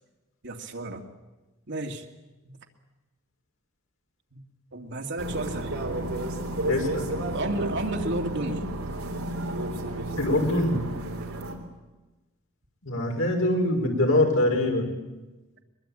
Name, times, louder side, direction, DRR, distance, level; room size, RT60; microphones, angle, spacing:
voice 1, 0.4-1.0 1.7-2.0 2.4-2.6 4.3-4.4 4.7-5.8 7.3-8.7, right 2 dB, 60° right, 3 dB, 2.4 m, -32 dB
sound 1, 5.2-11.6, right 1 dB, 90° right, 3.6 m, -32 dB
voice 2, 6.7-7.0 10.2-10.8 12.8-14.9, left 1 dB, 70° left, 2 dB, 5.5 m, -23 dB
22.5 x 22.5 x 8.9 m, 1.1 s
head